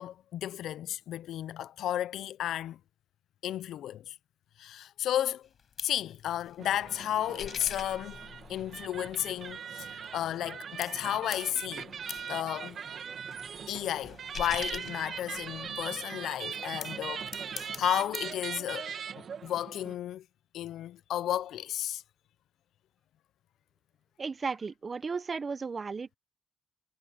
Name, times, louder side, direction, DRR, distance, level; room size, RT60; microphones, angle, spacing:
voice 1, 0.0-2.8 3.4-4.1 4.6-5.5 5.8-8.2 8.5-12.0 12.3-12.8 13.7-20.2 20.5-22.0, left 12 dB, 75° left, 0.6 m, -33 dB
sound 1, 5.4-10.5 10.8-15.8 16.5-18.4, left 7 dB, 55° left, 5.3 m, -45 dB
sound 2, 6.6-19.9, right 7 dB, 55° right, 1.9 m, -41 dB
voice 2, 24.2-26.2, right 5 dB, 35° right, 0.9 m, -35 dB
cardioid pair, 90°, 0 cm